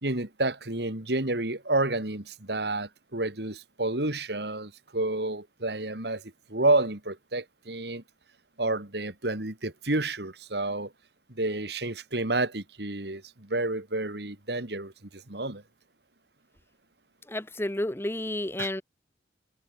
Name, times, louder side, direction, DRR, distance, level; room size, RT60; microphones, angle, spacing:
voice 1, 0.0-8.0 8.6-10.9 11.3-15.6 18.6-18.8, right 2 dB, 65° right, 2.8 m, -30 dB
voice 2, 17.3-18.8, left 1 dB, 15° left, 1.0 m, -31 dB
head